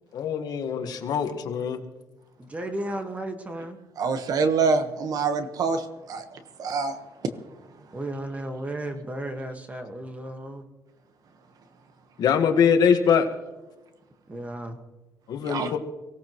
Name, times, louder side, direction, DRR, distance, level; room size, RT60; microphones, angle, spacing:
voice 1, 0.1-1.8 12.2-13.3 15.3-15.8, left 7 dB, 60° left, 6 dB, 1.6 m, -23 dB
voice 2, 2.4-3.8 7.9-10.6 14.3-14.8, right 1 dB, 20° right, 5 dB, 1.7 m, -34 dB
voice 3, 4.0-5.8 6.1-6.2 6.6-6.9 15.5-15.7, right 4 dB, 55° right, 8 dB, 1.3 m, -25 dB
23.5 x 17.0 x 3.1 m, 1.1 s
cardioid pair, 115°, 7 cm